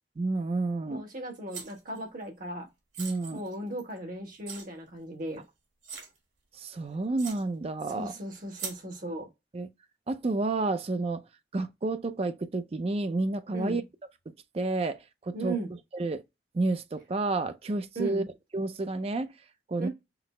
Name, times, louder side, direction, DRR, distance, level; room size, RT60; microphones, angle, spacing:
voice 1, 0.2-1.0 3.0-3.4 6.5-8.1 9.5-9.7 10.1-11.2 11.5-13.8 14.5-15.6 15.9-16.2 16.5-18.2 18.5-19.3 19.7-19.9, right 2 dB, 35° right, 0.4 m, -30 dB
voice 2, 0.9-2.7 3.3-5.4 7.9-9.3 13.5-13.8 15.3-15.7 17.9-18.3 19.8-19.9, right 2 dB, 50° right, 1.2 m, -37 dB
sound 1, 1.5-2.0 2.9-4.0 4.5-4.7 5.3-5.4 5.8-6.2 6.8-6.9 7.2-7.4 8.5-8.8, right 6 dB, 90° right, 1.7 m, -40 dB
5.8 x 2.0 x 3.1 m
head